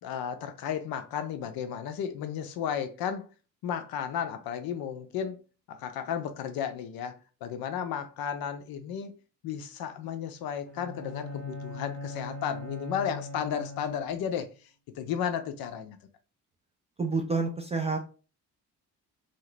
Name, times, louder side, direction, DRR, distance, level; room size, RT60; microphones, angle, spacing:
voice 1, 0.0-3.3 3.6-5.4 5.7-9.2 9.4-14.5 14.9-16.0, left 8 dB, 50° left, 0.6 m, -33 dB
Bowed string instrument, 10.7-14.4, left 2 dB, 75° right, 0.7 m, -40 dB
voice 2, 17.0-18.0, right 4 dB, 15° right, 0.3 m, -28 dB
2.7 x 2.0 x 3.2 m
figure-of-eight pair, 45°, 48 cm